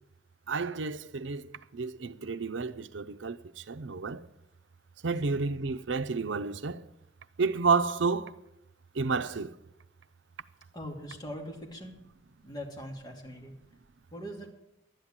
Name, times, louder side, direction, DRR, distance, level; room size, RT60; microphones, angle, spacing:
voice 1, 0.5-1.4 1.7-3.4 3.7-4.2 5.0-6.8 7.4-8.3 9.0-9.5, right 4 dB, 90° right, 0.7 m, -30 dB
voice 2, 10.7-12.0 12.4-13.5 14.1-14.5, equal, 20° left, 2.4 m, -41 dB
12.0 x 9.8 x 8.8 m
head